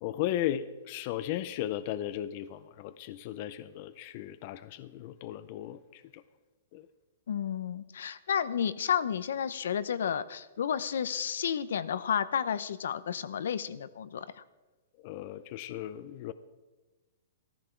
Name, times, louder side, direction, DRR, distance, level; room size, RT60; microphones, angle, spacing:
voice 1, 0.0-6.2 6.7-6.9 15.0-16.3, left 12 dB, 40° left, 14 dB, 0.5 m, -36 dB
voice 2, 7.3-14.4, left 8 dB, 75° left, 15 dB, 0.7 m, -31 dB
14.5 x 13.5 x 4.5 m, 1.2 s
hypercardioid pair, 160°, 0 cm